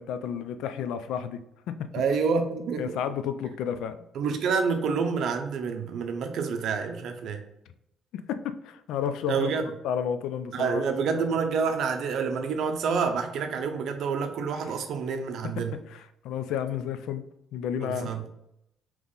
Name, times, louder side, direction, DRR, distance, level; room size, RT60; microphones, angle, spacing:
voice 1, 0.0-1.4 1.7-1.9 2.8-4.0 8.3-10.8 11.1-11.2 15.4-17.2 17.5-18.1, left 8 dB, 90° left, 10 dB, 0.3 m, -32 dB
voice 2, 1.9-2.9 4.1-7.4 9.3-9.7 10.5-15.8 17.8-18.2, right 5 dB, 65° right, 6 dB, 0.6 m, -28 dB
3.6 x 3.0 x 3.9 m, 0.80 s
cardioid pair, 140°, 0 cm